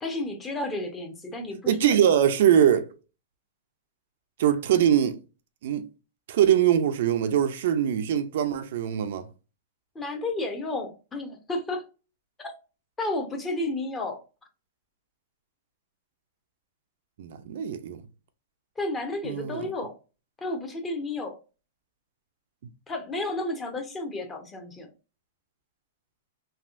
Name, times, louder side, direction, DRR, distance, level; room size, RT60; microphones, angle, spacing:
voice 1, 0.0-2.1 9.9-11.8 12.4-12.5 13.0-14.2 18.8-19.9 20.4-21.4 22.9-24.9, left 2 dB, 15° left, 0.8 m, -32 dB
voice 2, 1.7-2.9 4.4-5.2 5.6-5.9 6.3-9.3 17.2-18.0 19.2-19.7, right 9 dB, 65° right, 0.4 m, -22 dB
3.4 x 2.4 x 2.4 m
hypercardioid pair, 125°, 0 cm